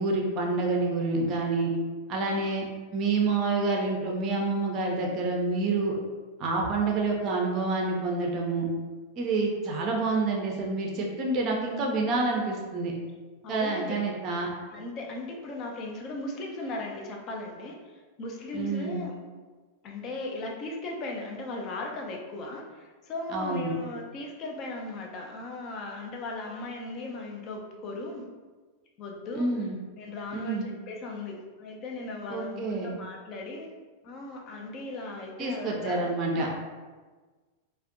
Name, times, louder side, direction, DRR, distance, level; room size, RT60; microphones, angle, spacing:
voice 1, 0.0-1.7 2.1-2.7 2.9-6.0 6.4-8.7 9.2-12.9 13.5-14.5 18.5-19.0 23.3-23.7 29.3-29.8 30.3-30.7 32.3-32.9 35.4-36.5, right 3 dB, 35° right, -1 dB, 0.4 m, -28 dB
voice 2, 13.4-14.0 14.7-17.8 18.2-19.1 19.8-28.3 29.0-29.5 30.0-33.7 34.0-36.1 36.4-36.5, left 2 dB, 35° left, 1 dB, 0.4 m, -37 dB
2.4 x 2.1 x 2.4 m, 1.4 s
figure-of-eight pair, 90°, 0 cm